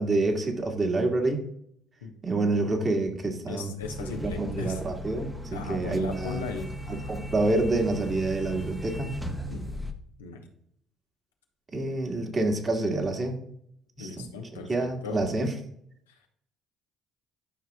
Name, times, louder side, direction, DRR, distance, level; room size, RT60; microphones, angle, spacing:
voice 1, 0.0-1.4 2.2-3.7 4.2-6.4 6.9-9.1 11.7-13.4 14.0-14.3 14.7-15.5, right 2 dB, 35° right, 3 dB, 1.9 m, -27 dB
voice 2, 3.5-4.8 5.5-7.1 9.5-9.6 10.2-10.4 14.0-15.2, left 4 dB, 85° left, 2 dB, 1.1 m, -37 dB
sound 1, 3.8-9.9, equal, 10° right, 1.1 m, -37 dB
12.0 x 5.8 x 2.4 m, 0.70 s
hypercardioid pair, 55°, 0 cm